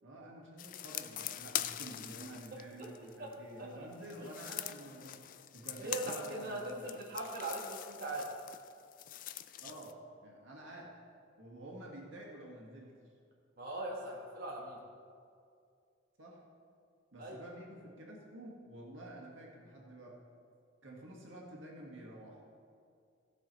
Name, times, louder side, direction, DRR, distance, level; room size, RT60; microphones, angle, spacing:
voice 1, 0.0-6.9 9.6-11.0 11.4-13.0 16.2-16.4 17.1-20.3 20.8-22.4, right 1 dB, 85° right, -1 dB, 1.9 m, -50 dB
sound 1, 0.6-3.3 3.9-9.9, left 12 dB, 45° left, 0.3 m, -43 dB
voice 2, 5.8-8.3 13.6-14.8 17.2-17.4, right 2 dB, 45° right, -3 dB, 1.6 m, -40 dB
15.5 x 6.3 x 4.5 m, 2.3 s
head